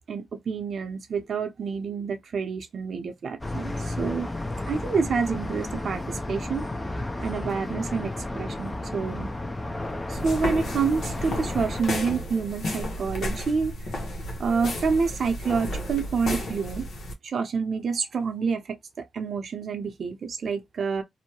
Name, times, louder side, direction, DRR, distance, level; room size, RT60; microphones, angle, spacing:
voice 1, 0.1-4.3 4.7-6.6 7.2-9.3 10.1-14.0 14.4-16.9 17.2-21.0, right 5 dB, 60° right, 0.7 m, -28 dB
sound 1, 3.4-11.8, left 2 dB, 20° left, 0.6 m, -33 dB
sound 2, 10.2-17.1, left 1 dB, 75° left, 0.9 m, -32 dB
2.7 x 2.1 x 2.9 m
cardioid pair, 75°, 0 cm